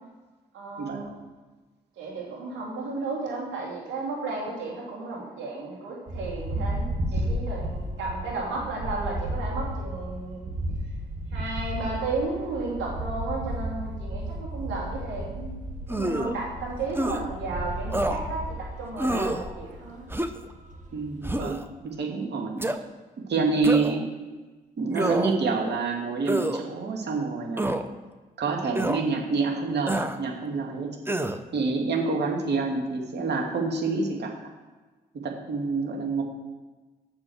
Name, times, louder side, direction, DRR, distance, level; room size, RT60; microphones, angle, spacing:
voice 1, 0.5-1.2 2.0-10.5 11.3-15.5 15.9-20.1, right 3 dB, 75° right, -3 dB, 2.9 m, -33 dB
sound 1, 6.1-21.2, right 1 dB, 40° right, 1.9 m, -33 dB
sound 2, 15.9-16.4 16.9-17.2 17.9-18.2 19.0-19.4 20.1-20.5 21.2-21.6 22.6-22.8 23.6-24.0 24.9-25.4 26.3-26.6 27.6-27.8 28.8-29.0 29.9-30.2 31.1-31.4, right 1 dB, 10° right, 1.0 m, -27 dB
voice 2, 20.9-22.6 23.3-24.0 24.8-27.7 28.4-30.9 31.5-34.3 35.2-36.2, right 4 dB, 60° right, 0 dB, 2.6 m, -27 dB
8.6 x 6.8 x 6.4 m, 1.3 s
hypercardioid pair, 40°, 20 cm